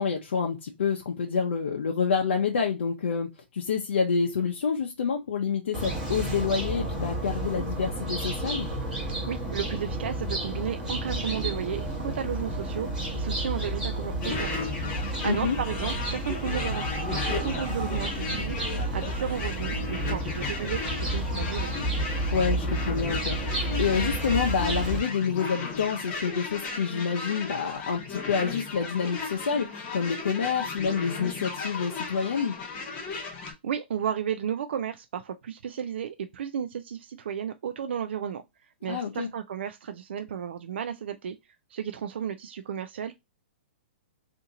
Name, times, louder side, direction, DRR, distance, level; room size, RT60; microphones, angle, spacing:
voice 1, 0.0-8.7 15.2-15.6 22.3-32.6 38.9-39.3, left 6 dB, 85° left, 0.6 m, -28 dB
sound 1, 5.7-25.0, right 1 dB, 5° right, 0.9 m, -31 dB
voice 2, 9.3-12.9 13.2-14.9 15.2-21.8 33.6-38.4 38.8-41.4 41.7-43.1, right 8 dB, 70° right, 0.3 m, -33 dB
sound 2, 14.2-33.5, left 4 dB, 25° left, 0.8 m, -35 dB
2.8 x 2.6 x 3.7 m
hypercardioid pair, 165°, 6 cm